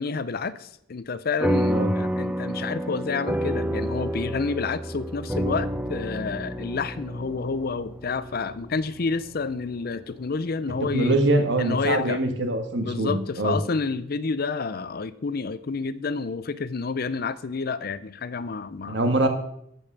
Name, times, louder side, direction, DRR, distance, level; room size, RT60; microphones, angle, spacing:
voice 1, 0.0-11.2 11.6-12.2 12.8-19.0, left 4 dB, 50° left, 15 dB, 0.5 m, -29 dB
sound 1, 1.4-10.2, equal, 5° right, 0.5 m, -29 dB
voice 2, 10.8-13.6 18.9-19.3, right 2 dB, 60° right, 6 dB, 1.7 m, -23 dB
12.5 x 5.3 x 7.3 m, 0.74 s
head